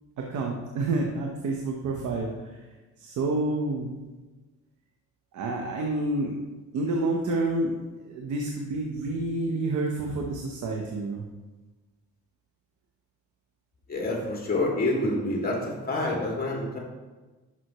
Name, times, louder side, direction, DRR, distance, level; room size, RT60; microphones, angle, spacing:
voice 1, 0.2-2.6 3.0-4.0 5.3-6.4 6.7-11.2, right 2 dB, 75° right, 0 dB, 1.1 m, -29 dB
voice 2, 13.9-16.8, left 2 dB, 30° left, -3 dB, 2.6 m, -27 dB
11.5 x 6.0 x 3.1 m, 1.2 s
cardioid pair, 90°, 30 cm